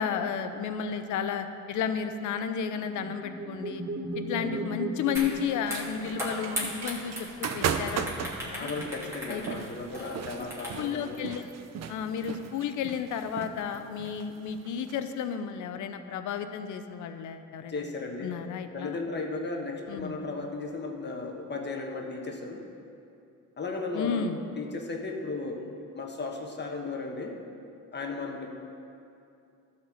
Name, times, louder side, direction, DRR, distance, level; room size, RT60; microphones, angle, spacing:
voice 1, 0.0-3.8 4.1-8.7 9.3-9.4 10.8-11.5 11.9-17.8 18.2-19.0 19.9-20.2 23.9-24.4, left 7 dB, 75° left, 9 dB, 0.7 m, -32 dB
sound 1, 2.4-6.4, right 1 dB, 35° right, 1.4 m, -37 dB
sound 2, 5.2-5.3 5.6-11.0, equal, 10° right, 2.7 m, -37 dB
sound 3, 5.7-15.0, right 7 dB, 60° right, 0.6 m, -37 dB
voice 2, 8.6-11.2 17.7-18.4 18.7-22.6 23.6-24.2 24.6-25.6 25.9-27.4 27.9-28.5, left 3 dB, 35° left, 2 dB, 1.3 m, -35 dB
12.0 x 4.4 x 7.7 m, 2.6 s
cardioid pair, 90°, 30 cm